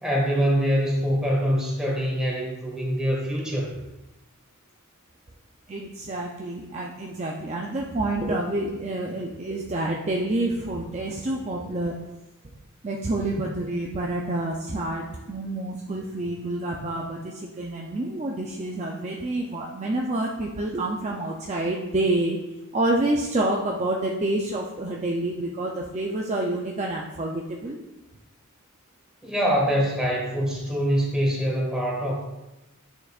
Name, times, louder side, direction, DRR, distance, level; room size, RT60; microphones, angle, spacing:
voice 1, 0.0-3.7 29.2-32.1, equal, 5° right, -4 dB, 1.8 m, -24 dB
voice 2, 5.7-12.0 12.8-22.4 22.7-27.8, right 2 dB, 30° right, -2 dB, 0.5 m, -28 dB
9.3 x 6.5 x 2.5 m, 1.0 s
head